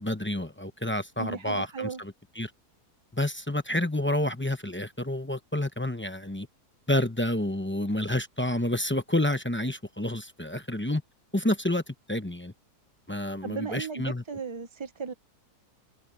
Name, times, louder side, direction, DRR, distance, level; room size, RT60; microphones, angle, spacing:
voice 1, 0.0-2.5 3.1-6.5 6.9-11.0 11.3-12.5 13.1-14.2, left 1 dB, 10° left, 0.6 m, -29 dB
voice 2, 1.2-2.0 13.4-15.1, right 5 dB, 45° right, 0.3 m, -35 dB
omnidirectional pair, 1.7 m